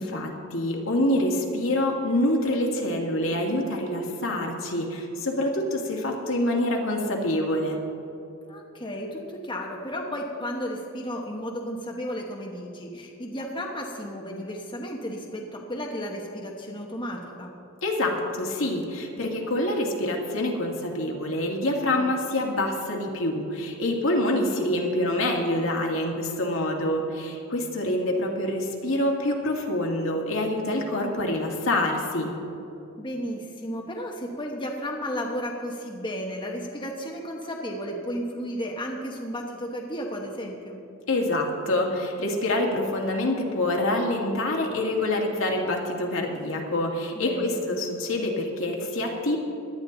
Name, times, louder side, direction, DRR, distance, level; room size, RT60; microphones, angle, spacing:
voice 1, 0.0-7.8 17.8-32.3 41.1-49.4, left 1 dB, 70° left, 0 dB, 2.1 m, -26 dB
voice 2, 8.5-17.5 21.9-22.1 33.0-40.8 47.1-47.6, equal, 25° left, -1 dB, 1.1 m, -33 dB
17.5 x 11.5 x 3.9 m, 2.6 s
head